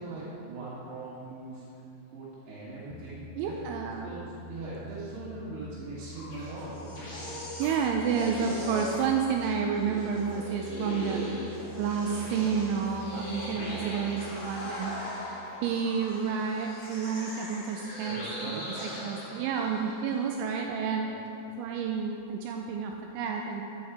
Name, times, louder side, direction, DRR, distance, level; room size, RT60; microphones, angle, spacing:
voice 1, 0.0-1.7 2.1-3.5 4.0-6.9 18.1-18.7 21.0-21.1, right 2 dB, 60° right, -10 dB, 3.5 m, -41 dB
sound 1, 2.9-16.1, left 3 dB, 85° left, 2.6 m, -47 dB
voice 2, 3.4-4.2 7.6-21.1 21.6-23.6, right 6 dB, 85° right, 2 dB, 2.7 m, -30 dB
sound 2, 6.0-20.1, left 1 dB, 35° left, 2.0 m, -39 dB
12.5 x 8.1 x 4.8 m, 2.7 s
omnidirectional pair, 5.8 m